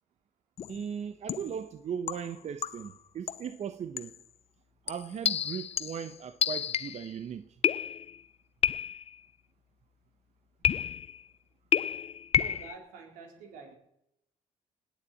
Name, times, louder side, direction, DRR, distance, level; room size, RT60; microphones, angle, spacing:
sound 1, 0.6-0.8 1.3-1.6 2.1-3.0 3.3-3.5 4.0-4.2 4.9-7.1 7.6-8.2 8.6-9.2 10.6-11.2 11.7-12.7, left 8 dB, 50° left, 0.5 m, -30 dB
voice 1, 0.7-4.1 4.9-7.6, right 8 dB, 55° right, 0.9 m, -38 dB
voice 2, 12.4-13.7, right 4 dB, 90° right, 3.9 m, -47 dB
19.0 x 7.2 x 8.4 m
supercardioid pair, 70°, 14 cm